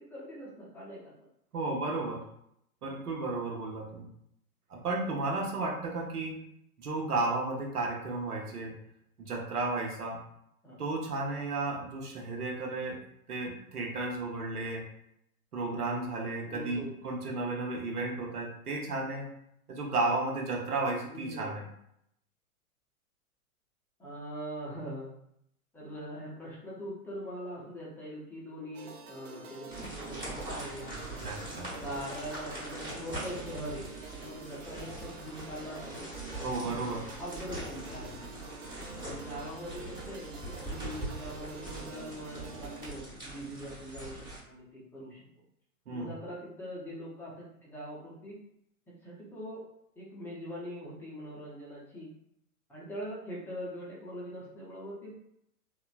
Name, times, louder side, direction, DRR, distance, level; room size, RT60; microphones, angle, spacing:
voice 1, 0.1-1.3 10.6-10.8 16.5-17.0 21.1-21.6 24.0-25.1 25.7-31.1 31.8-36.1 36.4-38.4 39.0-45.3 45.9-48.4 48.9-49.6 50.0-52.1 52.7-55.2, equal, 5° left, -7 dB, 0.4 m, -42 dB
voice 2, 1.5-2.2 2.8-4.1 4.7-6.3 6.8-8.8 9.2-10.2 10.8-13.0 13.3-14.8 15.5-19.3 19.7-21.7 31.2-31.7 36.4-37.0 45.9-46.1, right 2 dB, 90° right, 0 dB, 0.8 m, -33 dB
sound 1, 28.7-42.9, right 4 dB, 45° right, 0.6 m, -48 dB
sound 2, 29.7-44.4, right 1 dB, 10° right, 1.0 m, -42 dB
2.9 x 2.1 x 2.4 m, 0.75 s
hypercardioid pair, 110°, 44 cm